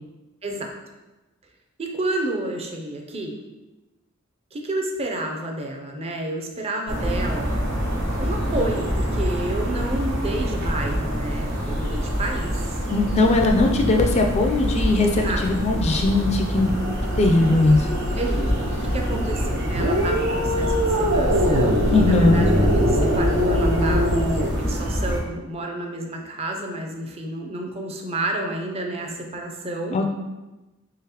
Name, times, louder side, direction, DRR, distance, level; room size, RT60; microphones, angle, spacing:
voice 1, 0.4-0.8 1.8-3.4 4.5-7.6 8.2-12.8 15.2-15.6 18.2-24.1 24.6-30.0, right 2 dB, 30° right, 2 dB, 0.5 m, -30 dB
sound 1, 6.9-25.2, equal, 65° right, 1.0 m, -25 dB
voice 2, 12.9-16.7 17.2-17.9 21.9-22.5 29.9-30.1, left 2 dB, 30° left, 3 dB, 0.3 m, -19 dB
sound 2, 16.6-24.1, equal, 45° right, 1.3 m, -34 dB
sound 3, 19.7-24.5, equal, 80° right, 0.6 m, -22 dB
3.8 x 3.3 x 2.9 m, 1.1 s
head